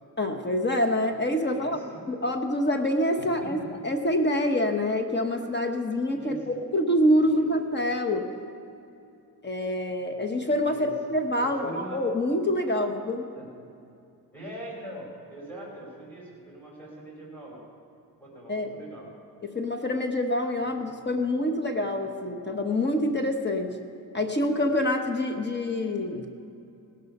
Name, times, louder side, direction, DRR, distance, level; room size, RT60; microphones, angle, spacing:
voice 1, 0.2-1.8 2.1-3.6 3.8-8.3 9.4-13.2 18.5-18.7 19.4-23.8 24.1-26.3, left 1 dB, 30° left, 5 dB, 1.0 m, -26 dB
voice 2, 1.4-2.1 3.2-3.9 6.1-6.6 7.2-7.5 10.6-10.9 11.4-12.0 12.7-12.9 13.3-13.5 14.3-17.6 18.2-19.1 20.7-21.1, right 1 dB, 5° left, -4 dB, 4.2 m, -42 dB
17.5 x 12.5 x 5.4 m, 2.7 s
wide cardioid pair, 140°, 37 cm